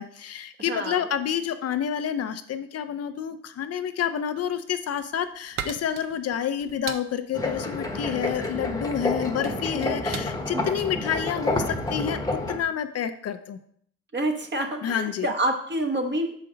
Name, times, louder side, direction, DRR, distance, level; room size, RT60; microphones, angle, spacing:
voice 1, 0.0-12.2 12.5-13.6 14.8-15.3, left 9 dB, 55° left, 9 dB, 0.5 m, -29 dB
voice 2, 0.6-1.0 9.7-10.0 10.5-10.8 14.1-16.3, right 1 dB, 35° right, 4 dB, 1.2 m, -28 dB
sound 1, 4.7-12.1, right 8 dB, 60° right, 0.6 m, -40 dB
sound 2, 7.3-12.6, left 2 dB, 10° left, 1.0 m, -29 dB
6.5 x 5.1 x 3.8 m, 0.65 s
cardioid pair, 90°, 30 cm